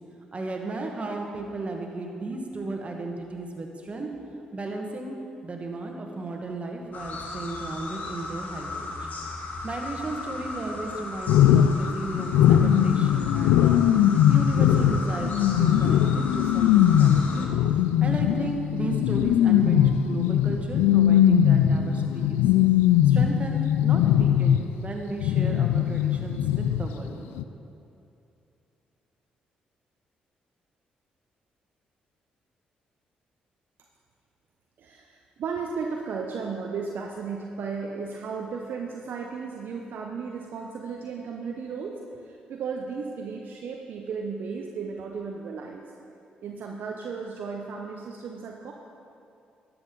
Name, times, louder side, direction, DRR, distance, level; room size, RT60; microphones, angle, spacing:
voice 1, 0.3-4.1 4.5-5.1 5.4-8.9 9.6-13.8 14.1-17.5 18.0-19.8 20.1-22.4 23.0-27.1, right 2 dB, 35° right, 2 dB, 1.6 m, -35 dB
sound 1, 6.9-17.5, left 3 dB, 50° left, 1.3 m, -36 dB
sound 2, 11.3-24.9 25.2-27.1 27.4-27.5, left 10 dB, 80° left, 0.3 m, -20 dB
voice 2, 34.8-45.8 46.4-48.7, right 5 dB, 65° right, 1 dB, 0.7 m, -35 dB
12.0 x 7.8 x 3.9 m, 2.7 s
hypercardioid pair, 50°, 4 cm